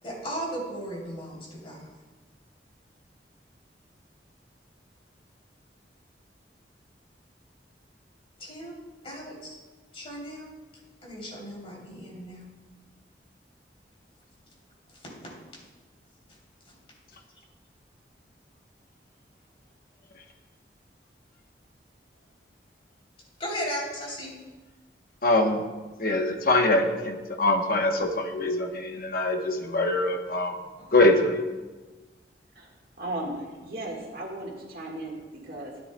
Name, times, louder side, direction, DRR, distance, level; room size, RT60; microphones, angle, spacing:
voice 1, 0.0-1.9 8.4-8.7 9.0-9.5 9.9-10.5 11.0-12.4 14.9-15.3 16.6-16.7 23.4-24.3 30.8-30.9, equal, 35° left, -4 dB, 3.1 m, -36 dB
voice 2, 25.2-25.6 26.0-30.6 30.9-31.4, left 2 dB, 55° left, 3 dB, 1.0 m, -23 dB
voice 3, 33.0-35.7, right 1 dB, 55° right, -1 dB, 1.6 m, -36 dB
12.5 x 9.8 x 2.2 m, 1.2 s
head